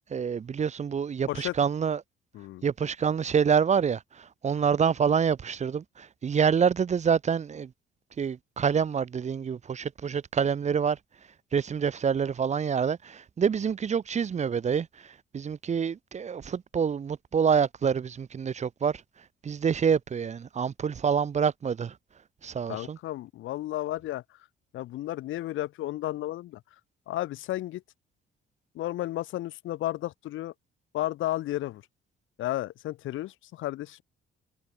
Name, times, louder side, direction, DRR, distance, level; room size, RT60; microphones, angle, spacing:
voice 1, 0.1-2.0 2.6-7.7 8.2-11.0 11.5-14.9 15.3-19.0 19.4-21.9 22.4-23.0, right 7 dB, 35° right, 0.6 m, -27 dB
voice 2, 2.3-2.6 22.7-24.4 24.7-26.6 27.1-27.8 28.7-30.5 30.9-31.8 32.4-34.0, left 15 dB, 80° left, 1.1 m, -33 dB
cardioid pair, 90°, 20 cm